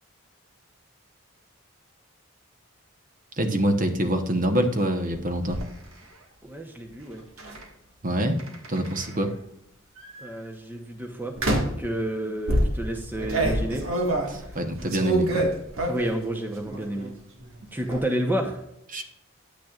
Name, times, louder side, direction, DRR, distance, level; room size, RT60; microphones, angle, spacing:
voice 1, 3.3-5.6 8.0-8.4 8.7-9.3 14.3-15.4 18.9-19.0, right 1 dB, 40° right, 5 dB, 1.0 m, -25 dB
sound 1, 5.1-5.7 7.4-7.6 8.4-9.2 10.0-10.3 11.4-11.9 12.5-16.2 16.6-17.1 17.4-18.0, right 1 dB, 80° right, 1.8 m, -27 dB
voice 2, 6.4-7.2 10.2-11.4 11.6-13.9 14.5-14.6 15.9-17.1 17.7-18.6, right 1 dB, 10° right, 2 dB, 0.9 m, -30 dB
10.5 x 9.3 x 2.4 m, 0.78 s
head